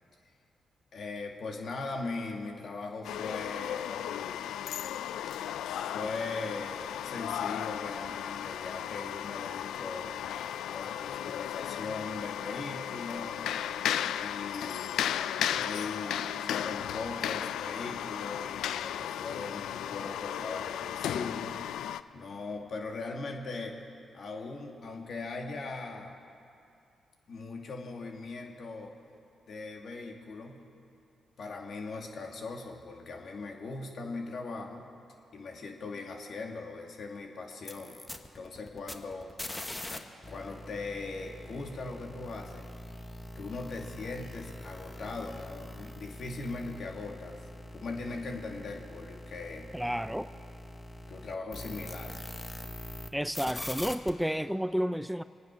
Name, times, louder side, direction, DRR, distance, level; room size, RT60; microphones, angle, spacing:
voice 1, 0.9-4.5 5.9-10.1 10.7-13.4 14.1-15.2 15.5-21.6 22.1-23.8 24.1-26.2 27.3-28.9 29.5-30.6 31.4-34.9 35.3-38.0 38.3-42.7 43.3-47.4 47.7-49.7 51.1-52.2, left 3 dB, 65° left, 1 dB, 2.4 m, -40 dB
sound 1, 3.0-22.0, left 10 dB, 80° left, 0.4 m, -35 dB
sound 2, 37.5-40.0 40.2-53.1 53.3-54.1, left 1 dB, 20° left, 1.3 m, -43 dB
voice 2, 49.7-50.3 53.1-55.2, equal, 5° right, 13 dB, 0.5 m, -31 dB
24.5 x 9.5 x 6.2 m, 2.5 s
supercardioid pair, 50°, 0 cm